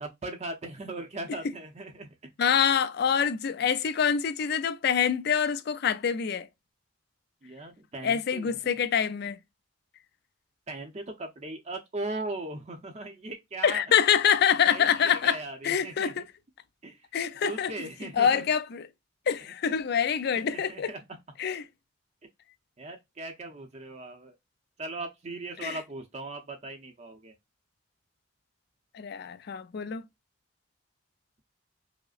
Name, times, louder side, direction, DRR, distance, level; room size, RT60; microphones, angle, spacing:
voice 1, 0.0-2.3 7.4-8.6 10.7-13.8 14.7-16.1 16.8-17.1 17.4-18.5 19.4-19.5 20.3-21.2 22.8-24.3 24.8-27.3, right 2 dB, 35° right, 0.6 m, -39 dB
voice 2, 2.4-6.5 8.0-9.4 13.6-15.4 15.6-16.2 17.1-17.7 18.2-18.9 19.3-20.9 21.4-21.6 25.6-25.8 28.9-30.0, left 7 dB, 60° left, 0.4 m, -25 dB
4.9 x 2.0 x 2.4 m
head